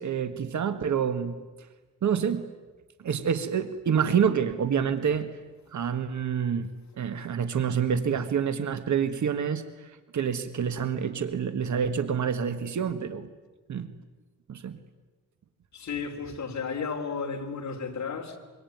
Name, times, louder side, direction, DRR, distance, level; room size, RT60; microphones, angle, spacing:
voice 1, 0.0-1.3 2.0-2.5 3.0-5.3 5.7-13.3 13.7-13.9 14.5-14.8, right 7 dB, 65° right, 1.7 m, -27 dB
voice 2, 15.7-18.4, left 5 dB, 60° left, 4.0 m, -33 dB
26.0 x 24.5 x 9.4 m
wide cardioid pair, 130°, 31 cm